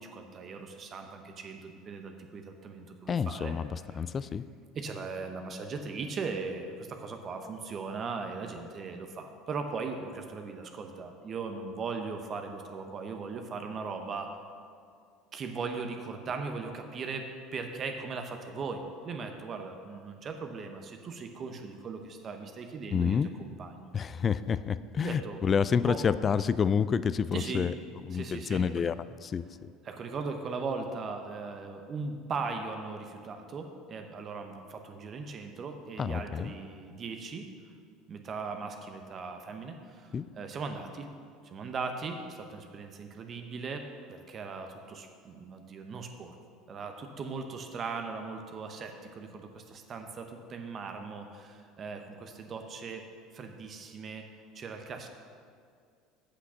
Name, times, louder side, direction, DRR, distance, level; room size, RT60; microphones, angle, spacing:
voice 1, 0.0-3.5 3.9-4.0 4.7-14.4 15.3-23.9 25.0-25.4 25.8-26.0 27.3-27.7 28.1-28.7 29.8-37.5 38.1-41.1 41.4-46.4 46.7-53.1 53.3-54.3 54.5-55.1, right 4 dB, 40° right, 5 dB, 0.8 m, -39 dB
voice 2, 3.1-4.5 22.9-23.3 23.9-27.7 28.1-28.9 29.2-29.4 36.0-36.5 40.1-40.2, left 6 dB, 35° left, 15 dB, 0.3 m, -28 dB
8.3 x 6.0 x 5.7 m, 2.2 s
hypercardioid pair, 70°, 0 cm